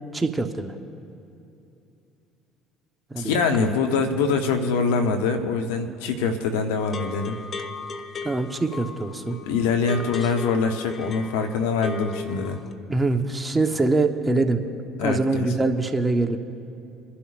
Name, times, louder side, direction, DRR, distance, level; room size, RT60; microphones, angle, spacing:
voice 1, 0.1-0.7 3.1-3.7 8.2-9.4 12.9-14.6 15.0-16.4, right 3 dB, 20° right, 6 dB, 1.1 m, -24 dB
voice 2, 3.2-7.4 9.5-12.6 15.0-15.5, left 4 dB, 75° left, 6 dB, 1.0 m, -24 dB
sound 1, 6.8-12.7, left 4 dB, 40° left, 1.1 m, -36 dB
28.5 x 11.5 x 2.6 m, 2.7 s
hypercardioid pair, 65°, 0 cm